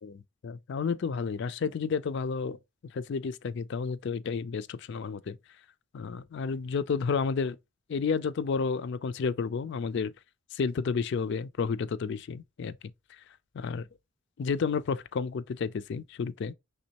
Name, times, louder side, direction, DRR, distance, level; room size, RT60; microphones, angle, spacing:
voice 1, 0.0-2.6 2.9-5.4 5.9-7.6 7.9-10.1 10.5-12.8 13.5-13.9 14.4-16.5, left 5 dB, 55° left, 0.3 m, -31 dB
5.2 x 3.5 x 2.8 m
head